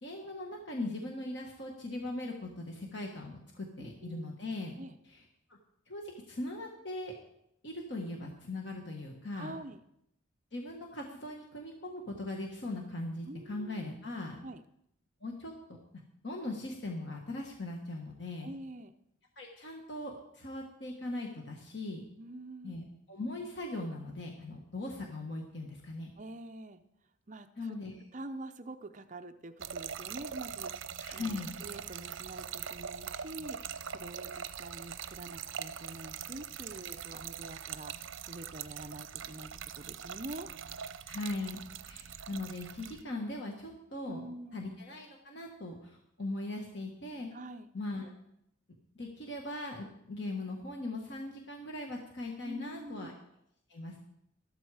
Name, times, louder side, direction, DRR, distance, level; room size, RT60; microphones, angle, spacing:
voice 1, 0.0-4.7 5.0-5.2 5.5-5.6 5.9-7.1 7.6-9.5 10.5-14.4 15.2-15.5 16.2-18.5 19.4-22.0 22.6-26.1 27.6-27.9 31.0-31.5 41.1-44.2 44.5-47.3 47.7-48.1 48.9-53.1 53.7-54.0, left 2 dB, 60° left, 1 dB, 1.4 m, -40 dB
voice 2, 3.8-4.3 4.8-5.0 9.3-9.8 13.3-13.8 14.4-14.6 18.4-18.9 22.2-22.8 26.2-26.8 27.3-27.8 28.1-40.5 44.0-44.7 47.3-47.7 52.4-53.1, right 2 dB, 35° right, 9 dB, 0.6 m, -46 dB
Trickle dribble / Fill (with liquid), 29.6-43.0, right 8 dB, 75° right, 0.7 m, -42 dB
13.5 x 12.5 x 4.8 m, 0.77 s
head